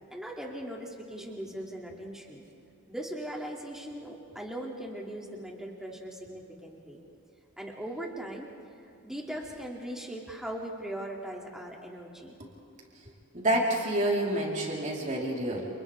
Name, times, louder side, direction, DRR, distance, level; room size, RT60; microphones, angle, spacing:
voice 1, 0.1-2.5 2.9-7.0 7.6-8.5 9.0-12.3, right 1 dB, 5° right, -2 dB, 2.7 m, -39 dB
voice 2, 13.3-15.7, right 1 dB, 35° right, -3 dB, 4.4 m, -28 dB
30.0 x 29.5 x 3.7 m, 2.7 s
head